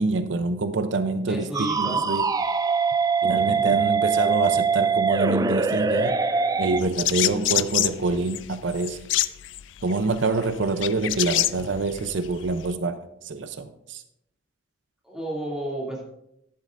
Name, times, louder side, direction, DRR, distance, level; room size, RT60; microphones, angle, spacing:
voice 1, 0.0-2.3 3.2-6.2 6.6-9.0 9.8-13.0 13.2-14.0, right 3 dB, 75° right, 0.6 m, -26 dB
voice 2, 1.3-2.1 3.4-3.7 15.0-16.0, right 1 dB, 5° right, 2.5 m, -32 dB
sound 1, 1.5-6.8, right 5 dB, 20° right, 0.3 m, -23 dB
sound 2, 6.8-12.7, left 14 dB, 80° left, 0.4 m, -27 dB
11.5 x 11.5 x 2.5 m
head